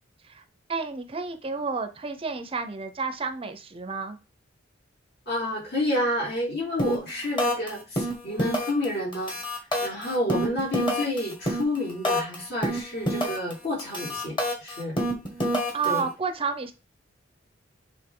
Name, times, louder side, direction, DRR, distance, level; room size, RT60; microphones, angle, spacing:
voice 1, 0.7-4.2 15.7-16.7, right 5 dB, 30° right, 8 dB, 0.6 m, -30 dB
voice 2, 5.3-9.4 9.8-15.0 15.8-16.1, left 1 dB, 55° left, -3 dB, 3.4 m, -29 dB
sound 1, 6.8-7.1 7.4-7.7 8.0-8.9 9.1-12.4 12.6-13.5 13.8-16.0, equal, 25° left, 1.9 m, -27 dB
8.0 x 3.5 x 3.7 m, 0.30 s
head